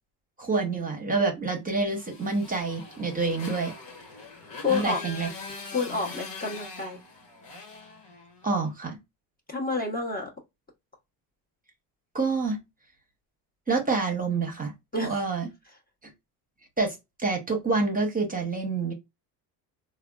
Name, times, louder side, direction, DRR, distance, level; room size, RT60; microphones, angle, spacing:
voice 1, 0.4-3.7 4.7-5.3 8.4-9.0 12.1-12.6 13.7-14.7 15.0-15.5 16.0-16.1 16.8-18.9, right 3 dB, 20° right, 0.8 m, -27 dB
Motorcycle, 1.9-8.6, left 4 dB, 60° left, 1.3 m, -42 dB
voice 2, 4.6-5.0 5.7-7.0 9.5-10.3 14.9-15.2, left 3 dB, 20° left, 0.8 m, -29 dB
3.4 x 2.3 x 2.2 m
supercardioid pair, 80°, 48 cm